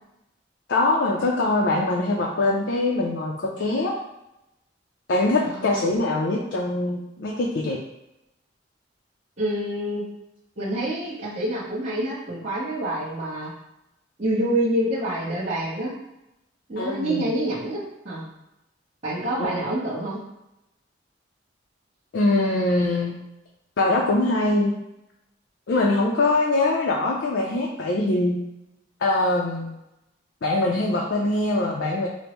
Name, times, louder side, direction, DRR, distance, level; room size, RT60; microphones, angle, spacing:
voice 1, 0.7-3.9 5.1-7.8 16.8-17.2 19.4-19.7 22.1-23.2 23.8-24.7 25.7-28.4 29.0-29.7 30.4-32.1, left 2 dB, 70° left, -2 dB, 0.5 m, -23 dB
voice 2, 5.4-5.9 9.4-10.0 10.6-13.5 14.2-15.9 16.7-18.3 19.0-20.2, right 1 dB, 35° right, -12 dB, 1.0 m, -27 dB
5.1 x 2.1 x 3.0 m, 0.88 s
head